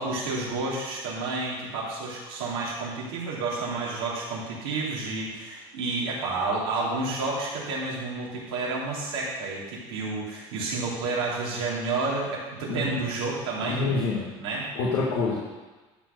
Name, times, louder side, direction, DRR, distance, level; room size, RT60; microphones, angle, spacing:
voice 1, 0.0-13.8 14.4-14.7, right 3 dB, 90° right, -5 dB, 3.0 m, -30 dB
voice 2, 13.7-14.3 14.8-15.3, left 4 dB, 80° left, -4 dB, 1.8 m, -26 dB
12.0 x 4.1 x 6.8 m, 1.2 s
supercardioid pair, 90°, 13 cm